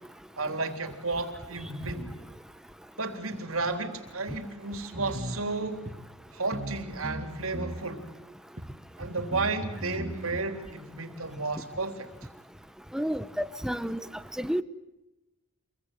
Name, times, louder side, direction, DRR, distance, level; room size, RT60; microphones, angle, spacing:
voice 1, 0.4-2.1 3.0-5.9 6.3-8.1 9.0-12.1, right 3 dB, 70° right, 3.6 m, -33 dB
sound 1, 4.9-5.4 5.9-6.0 6.5-6.8 7.0-7.8 8.6-8.7 9.2-10.4, right 1 dB, 35° right, 2.5 m, -36 dB
voice 2, 12.9-14.0 14.4-14.6, equal, 5° right, 1.0 m, -30 dB
27.0 x 22.5 x 9.4 m
head